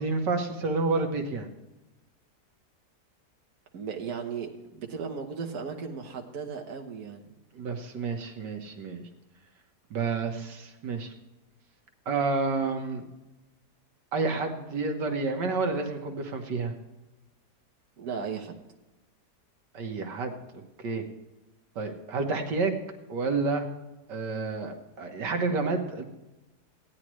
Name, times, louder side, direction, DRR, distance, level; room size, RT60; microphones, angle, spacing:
voice 1, 0.0-1.5 7.6-9.0 9.9-11.1 12.1-13.0 14.1-16.7 19.7-20.3 20.8-21.0 21.8-22.8 23.1-23.7 24.1-26.0, right 4 dB, 75° right, 4 dB, 1.9 m, -29 dB
voice 2, 3.7-7.3 18.0-18.6, right 6 dB, 60° right, 2 dB, 1.6 m, -36 dB
16.0 x 10.0 x 3.1 m, 0.99 s
omnidirectional pair, 1.9 m